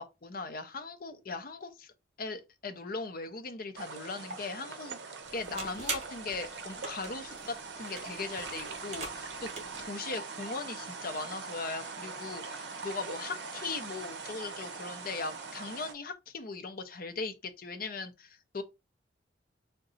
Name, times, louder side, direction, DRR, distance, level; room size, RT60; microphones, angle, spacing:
voice 1, 0.0-1.9 2.2-5.0 5.3-18.6, left 3 dB, 50° left, 0.6 m, -39 dB
sound 1, 3.8-15.9, right 4 dB, 65° right, 0.7 m, -42 dB
sound 2, 5.2-9.9, right 3 dB, 40° right, 1.3 m, -43 dB
3.8 x 2.2 x 3.8 m
head